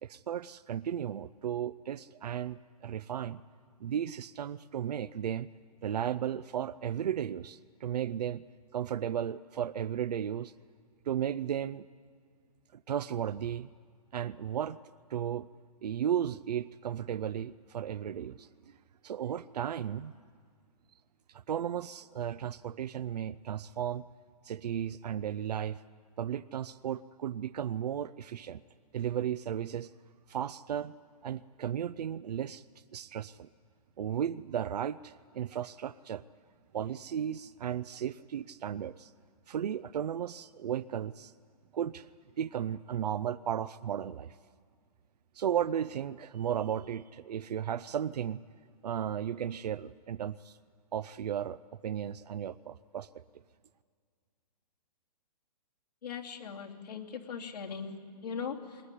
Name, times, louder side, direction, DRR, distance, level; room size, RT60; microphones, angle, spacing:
voice 1, 0.0-3.4 3.8-5.5 5.8-8.5 8.7-10.5 11.1-11.9 12.9-13.7 14.1-14.8 15.1-15.5 15.8-18.8 19.0-20.1 21.3-24.0 24.4-25.8 26.2-28.6 28.9-29.9 30.3-30.9 31.2-32.6 32.9-33.5 34.0-36.2 36.7-39.1 39.5-41.3 41.7-42.1 42.4-44.4 45.3-48.4 48.8-50.6 50.9-53.2, right 9 dB, 90° right, 15 dB, 0.5 m, -35 dB
voice 2, 56.0-58.8, left 6 dB, 90° left, 0 dB, 2.9 m, -40 dB
20.5 x 20.0 x 9.8 m, 2.1 s
hypercardioid pair, 160°, 20 cm